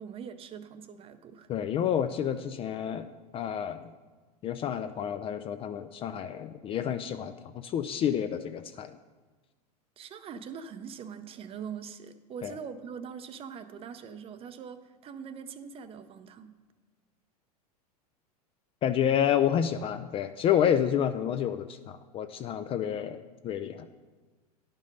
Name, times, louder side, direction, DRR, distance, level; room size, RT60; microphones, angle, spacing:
voice 1, 0.0-1.5 10.0-16.6, right 7 dB, 30° right, 11 dB, 0.6 m, -42 dB
voice 2, 1.5-3.1 3.3-3.9 4.4-8.9 12.4-12.6 18.8-23.9, left 9 dB, 25° left, 10 dB, 0.3 m, -29 dB
10.0 x 5.3 x 5.3 m, 1.3 s
hypercardioid pair, 110°, 21 cm